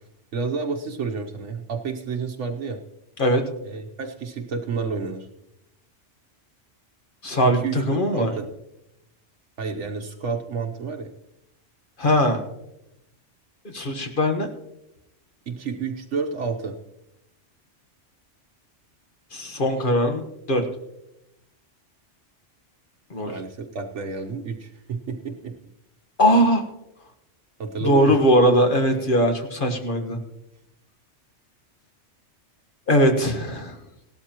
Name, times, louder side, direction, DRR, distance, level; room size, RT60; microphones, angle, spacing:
voice 1, 0.3-2.8 3.6-5.3 7.4-8.5 9.6-11.1 15.5-16.8 23.2-25.5 27.6-28.2, right 5 dB, 75° right, 2 dB, 1.2 m, -30 dB
voice 2, 7.2-8.3 12.0-12.4 13.7-14.5 19.3-20.6 23.1-23.3 26.2-26.6 27.8-30.2 32.9-33.8, equal, 45° left, 4 dB, 1.5 m, -20 dB
17.5 x 12.5 x 2.9 m, 0.86 s
omnidirectional pair, 1.2 m